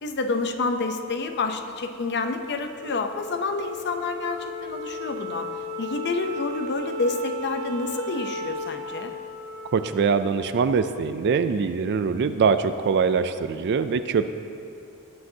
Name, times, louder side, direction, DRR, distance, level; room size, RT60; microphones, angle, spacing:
voice 1, 0.0-5.5 5.8-9.1, left 3 dB, 50° left, 7 dB, 0.6 m, -28 dB
Wind instrument woodwind instrument, 2.8-11.4, left 2 dB, 70° right, 1.5 m, -35 dB
voice 2, 9.7-14.3, right 5 dB, 50° right, 11 dB, 0.3 m, -23 dB
17.5 x 7.7 x 2.8 m, 2.6 s
head